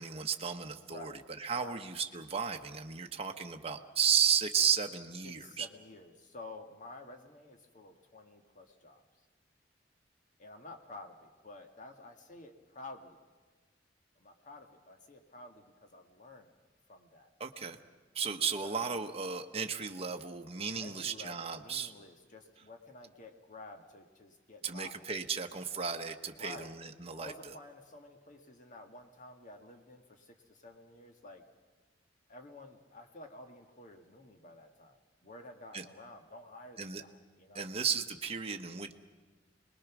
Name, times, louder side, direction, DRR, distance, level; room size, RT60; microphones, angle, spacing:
voice 1, 0.0-5.7 17.4-17.8 18.1-21.9 24.6-27.5 35.7-35.8 36.8-37.0 37.5-38.9, right 7 dB, 35° right, 4 dB, 1.0 m, -34 dB
voice 2, 0.9-1.2 1.5-1.8 5.2-9.0 10.4-13.2 14.2-16.5 16.9-17.3 18.4-19.0 20.8-25.0 26.4-26.7 27.2-31.4 32.3-35.0 35.2-37.7, left 2 dB, 45° left, 5 dB, 1.8 m, -51 dB
26.5 x 20.5 x 6.1 m, 1.3 s
head